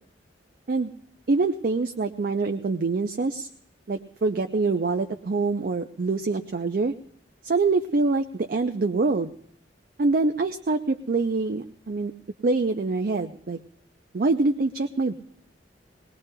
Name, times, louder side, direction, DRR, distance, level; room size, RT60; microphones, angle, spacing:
voice 1, 1.3-3.5 3.9-6.9 7.4-9.3 10.0-12.1 12.4-13.6 14.1-15.1, right 3 dB, 55° right, 6 dB, 0.5 m, -25 dB
21.0 x 19.5 x 2.2 m, 0.67 s
head